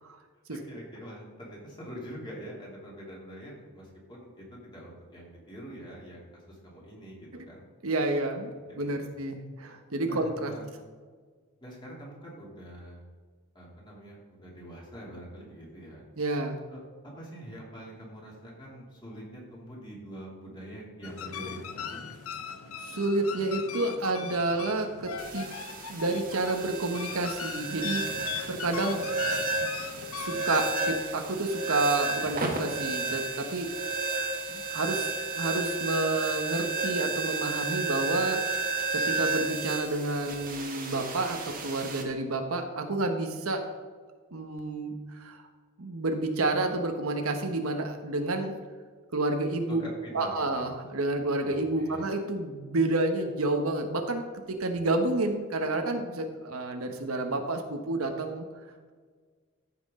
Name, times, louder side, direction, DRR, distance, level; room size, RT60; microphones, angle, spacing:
voice 1, 0.5-7.7 8.7-9.1 10.0-10.7 11.6-13.0 13.5-16.0 16.7-16.8 17.2-22.0 49.7-50.7 51.4-52.1, equal, 20° left, -4 dB, 2.8 m, -45 dB
voice 2, 7.8-10.5 16.2-16.6 22.8-25.5 25.9-29.1 30.2-33.7 33.9-35.1 35.4-43.6 44.3-45.4 45.8-48.5 49.1-49.8 50.1-54.2 54.5-58.4, right 2 dB, 85° right, 5 dB, 1.1 m, -30 dB
sound 1, 21.0-30.6, left 7 dB, 85° left, 0.7 m, -39 dB
sound 2, 25.2-42.0, right 3 dB, 40° right, 1.5 m, -32 dB
14.0 x 6.0 x 3.7 m, 1.5 s
head